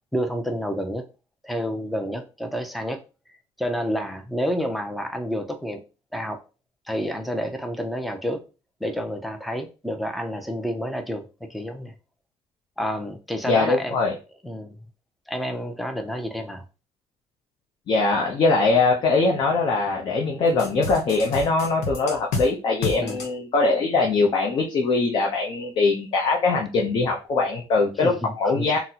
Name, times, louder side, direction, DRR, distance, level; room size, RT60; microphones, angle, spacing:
voice 1, 0.1-1.0 1.4-3.0 3.6-5.8 6.1-6.4 6.9-8.4 8.8-11.9 12.8-14.0 14.4-14.8 15.3-16.6 23.0-23.2 28.0-28.8, equal, ahead, 0.4 m, -29 dB
voice 2, 13.5-14.1 17.9-28.8, left 3 dB, 45° left, 0.6 m, -22 dB
sound 1, 20.6-22.5 22.8-23.3, left 3 dB, 85° left, 0.8 m, -29 dB
3.9 x 2.0 x 2.7 m
cardioid pair, 135°, 11 cm